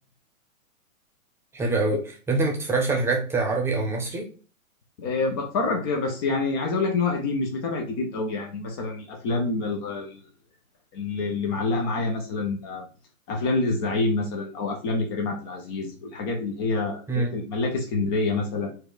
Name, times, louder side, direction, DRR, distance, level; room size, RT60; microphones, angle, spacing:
voice 1, 1.5-2.0 2.3-4.2 17.1-17.3, right 3 dB, 5° right, 1 dB, 0.8 m, -24 dB
voice 2, 5.0-10.2 10.9-12.9 13.3-18.7, left 3 dB, 20° left, 3 dB, 0.4 m, -27 dB
4.5 x 2.4 x 4.6 m, 0.37 s
hypercardioid pair, 140°, 42 cm